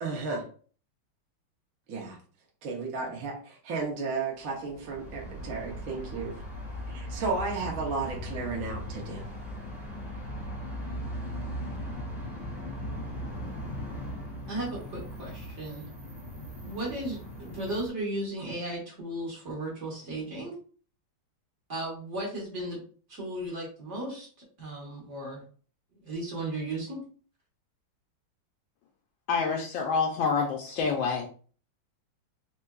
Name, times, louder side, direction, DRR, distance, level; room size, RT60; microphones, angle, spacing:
voice 1, 0.0-0.4 1.9-2.2 2.6-6.3 6.9-9.2, right 4 dB, 55° right, -1 dB, 1.0 m, -33 dB
sound 1, 4.7-17.9, equal, ahead, 0.9 m, -38 dB
voice 2, 14.5-15.8 16.6-20.6 21.7-22.8 23.1-24.3 24.6-25.4 26.0-27.0, right 1 dB, 40° right, -3 dB, 1.4 m, -35 dB
voice 3, 29.3-31.3, left 5 dB, 80° left, 1 dB, 1.3 m, -27 dB
4.5 x 2.6 x 2.2 m, 0.42 s
omnidirectional pair, 2.2 m